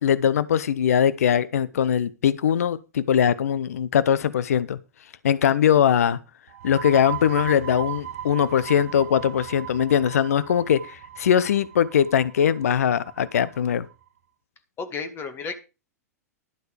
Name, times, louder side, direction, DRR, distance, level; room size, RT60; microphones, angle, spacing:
voice 1, 0.0-4.8 5.2-6.2 6.6-13.9, left 9 dB, 65° left, 17 dB, 0.8 m, -21 dB
sound 1, 6.5-13.9, right 10 dB, 60° right, 0.9 m, -37 dB
voice 2, 14.8-15.6, left 5 dB, 25° left, 9 dB, 2.1 m, -32 dB
12.0 x 8.0 x 5.0 m, 0.30 s
figure-of-eight pair, 100°, 9 cm